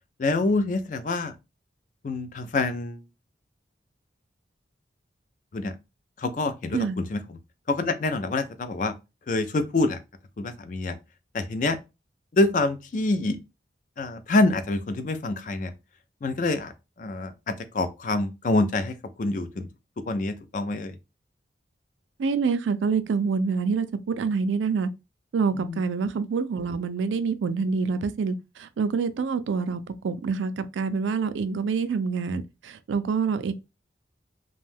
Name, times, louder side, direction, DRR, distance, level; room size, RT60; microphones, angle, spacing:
voice 1, 0.2-1.3 2.0-3.0 5.5-5.7 6.2-7.4 7.7-8.9 9.3-10.0 10.4-11.0 11.3-11.8 12.3-13.4 14.0-15.7 16.2-16.7 17.0-19.7 20.1-20.9 25.6-25.8, left 2 dB, 45° left, 0.3 m, -26 dB
voice 2, 22.2-24.9 25.3-33.5, right 5 dB, 85° right, 0.4 m, -26 dB
2.5 x 2.2 x 3.3 m
head